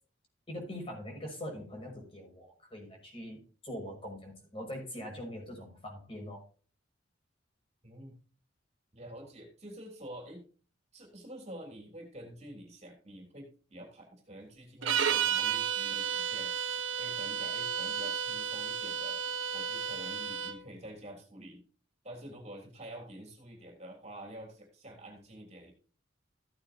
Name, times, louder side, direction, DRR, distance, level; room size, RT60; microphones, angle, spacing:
voice 1, 0.5-3.4 3.6-6.4, left 1 dB, 30° left, 0 dB, 6.2 m, -42 dB
voice 2, 7.8-8.1 8.9-10.4 10.9-16.5 17.0-19.2 19.5-21.6 22.0-25.7, right 1 dB, 35° right, 2 dB, 3.3 m, -48 dB
sound 1, 14.8-20.6, right 8 dB, 85° right, 1.3 m, -32 dB
15.0 x 9.1 x 2.8 m, 0.39 s
head